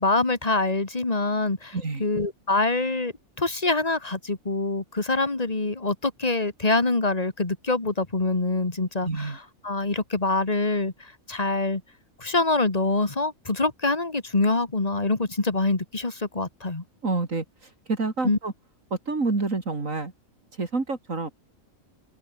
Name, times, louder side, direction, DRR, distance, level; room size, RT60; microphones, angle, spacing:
voice 1, 0.0-11.8 12.2-16.8 18.2-18.4, left 2 dB, 25° left, 2.1 m, -25 dB
voice 2, 1.7-2.0 9.0-9.4 17.0-17.4 17.9-18.5 18.9-20.1 20.6-21.3, right 3 dB, 65° right, 3.5 m, -27 dB
omnidirectional pair, 1.5 m